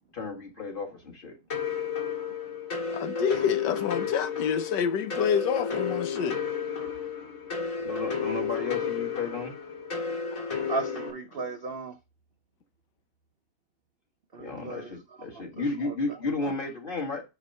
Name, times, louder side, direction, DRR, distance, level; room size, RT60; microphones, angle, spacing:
voice 1, 0.1-1.3 7.8-9.5 14.4-17.2, left 3 dB, 30° left, 1.8 m, -33 dB
sound 1, 1.5-11.1, left 6 dB, 55° left, 2.1 m, -32 dB
voice 2, 2.9-6.4, left 7 dB, 85° left, 1.4 m, -28 dB
voice 3, 10.7-12.0 14.3-14.9 15.3-16.5, right 3 dB, 60° right, 0.6 m, -36 dB
6.1 x 4.1 x 5.3 m
omnidirectional pair, 1.8 m